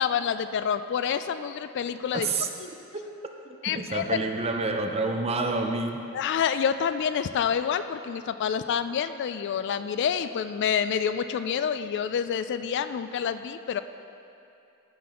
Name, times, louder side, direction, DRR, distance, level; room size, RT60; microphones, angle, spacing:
voice 1, 0.0-2.3 2.6-2.7 3.6-4.2 6.1-13.8, left 7 dB, 55° left, 11 dB, 0.3 m, -28 dB
voice 2, 2.1-2.5 2.9-3.0 3.5-6.0, right 3 dB, 30° right, 4 dB, 0.6 m, -28 dB
14.0 x 6.0 x 3.7 m, 2.7 s
head